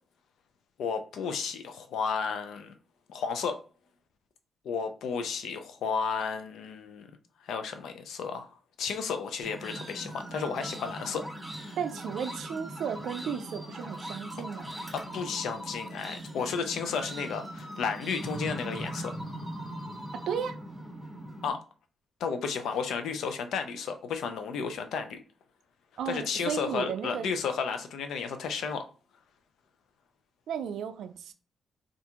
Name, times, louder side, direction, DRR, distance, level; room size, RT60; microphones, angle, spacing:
voice 1, 0.8-2.7 3.1-3.6 4.6-7.1 7.4-11.8 14.9-19.1 21.4-21.6 22.2-25.2 26.1-28.8, left 6 dB, 80° left, 0.5 m, -33 dB
sound 1, 9.4-21.5, right 1 dB, 10° right, 1.4 m, -40 dB
voice 2, 11.8-14.8 20.1-20.6 26.0-27.3 30.5-31.3, right 8 dB, 80° right, 0.3 m, -34 dB
2.7 x 2.5 x 3.5 m
supercardioid pair, 60°, 0 cm